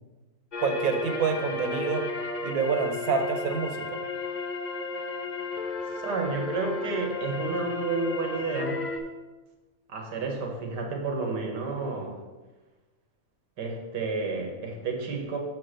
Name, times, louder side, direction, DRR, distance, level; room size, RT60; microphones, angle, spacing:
sound 1, 0.5-9.0, left 3 dB, 45° left, 0.6 m, -33 dB
voice 1, 0.6-2.0 2.4-3.9, right 5 dB, 65° right, 7 dB, 1.2 m, -27 dB
voice 2, 5.9-8.8 9.9-12.2 13.6-15.4, right 4 dB, 90° right, 2 dB, 1.8 m, -31 dB
6.7 x 4.7 x 6.3 m, 1.2 s
omnidirectional pair, 1.7 m